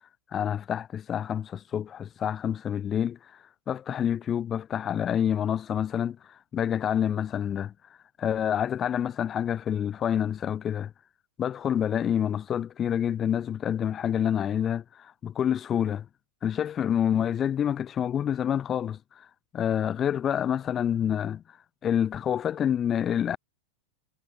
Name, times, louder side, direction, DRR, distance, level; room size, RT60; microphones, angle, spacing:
voice 1, 0.3-3.2 3.7-6.2 6.5-7.7 8.2-10.9 11.4-16.1 16.4-19.0 19.5-21.4 21.8-23.4, left 9 dB, 25° left, 6.8 m, -27 dB
figure-of-eight pair, 90°, 0 cm